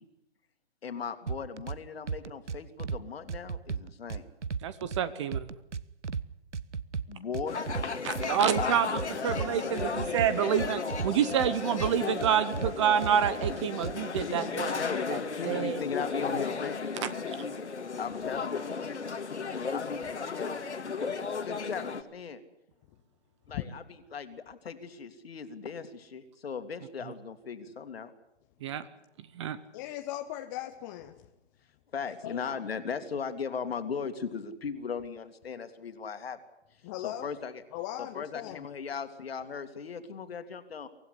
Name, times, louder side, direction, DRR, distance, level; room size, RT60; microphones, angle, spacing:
voice 1, 0.8-4.2 7.1-7.6 8.5-9.8 14.2-17.7 18.0-18.6 19.7-20.6 21.4-22.4 23.5-23.8 24.1-28.1 31.9-36.4 37.0-37.6 38.0-40.9, left 6 dB, 60° left, 9 dB, 2.6 m, -38 dB
sound 1, 1.3-1.8 2.1-3.0 3.3-5.0 5.3-6.2 6.5-8.3 8.6-9.5 9.8-11.5 11.8-12.7 13.0-14.2, right 6 dB, 85° right, 1.0 m, -34 dB
voice 2, 4.6-5.4 8.0-8.9 9.2-14.7 15.1-15.2 15.4-15.8 17.0-17.1 28.6-28.8 29.4-29.6, right 9 dB, 25° right, 15 dB, 0.9 m, -28 dB
sound 2, 7.5-22.0, left 5 dB, 75° left, 2.2 m, -35 dB
voice 3, 21.4-21.9 23.5-23.6 29.7-31.2 32.2-32.6 36.8-37.3 37.7-38.6, left 13 dB, 20° left, 5 dB, 0.8 m, -39 dB
24.5 x 15.5 x 9.9 m, 0.88 s
figure-of-eight pair, 140°, 34 cm